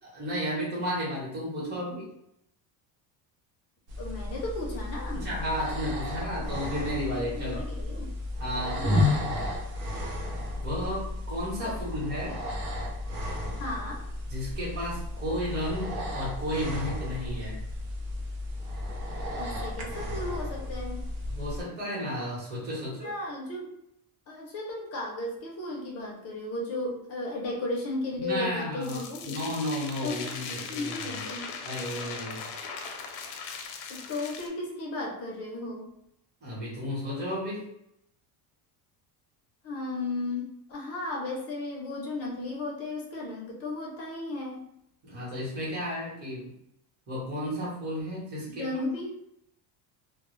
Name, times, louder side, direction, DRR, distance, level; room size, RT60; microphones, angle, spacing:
voice 1, 0.1-2.1 5.1-7.6 8.4-9.5 10.6-12.4 14.3-17.6 21.3-23.1 28.2-31.2 31.6-32.4 36.4-37.7 45.0-46.5 47.1-48.7, equal, 20° right, -7 dB, 0.8 m, -33 dB
sound 1, 3.9-21.6, left 1 dB, 85° right, 0.7 m, -33 dB
voice 2, 4.0-5.2 7.3-8.1 8.7-9.3 11.6-11.7 13.6-14.0 19.4-21.1 22.8-23.7 24.3-29.4 30.0-31.6 33.9-35.9 39.6-44.7 48.5-49.1, left 2 dB, 35° left, -1 dB, 0.4 m, -35 dB
sound 2, 28.8-34.5, left 5 dB, 90° left, 0.6 m, -39 dB
2.0 x 2.0 x 3.0 m, 0.77 s
cardioid pair, 150°, 47 cm